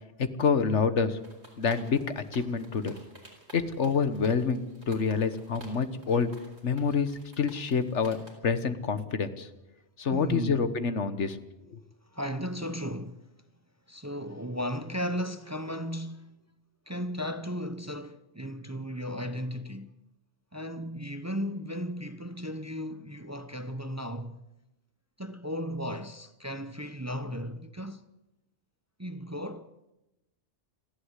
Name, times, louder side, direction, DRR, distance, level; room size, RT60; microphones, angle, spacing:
voice 1, 0.4-1.2 1.6-2.9 3.5-6.3 6.6-7.1 7.4-8.2 8.4-9.5 10.0-11.4, left 5 dB, 85° left, 1.6 m, -27 dB
sound 1, 1.2-8.3, right 2 dB, 70° right, 5.1 m, -52 dB
voice 2, 10.1-10.7 12.1-13.4 13.9-16.4 16.9-20.0 20.5-24.4 25.2-28.0 29.0-29.7, equal, 15° right, 0.8 m, -35 dB
29.5 x 11.5 x 8.2 m
omnidirectional pair, 1.2 m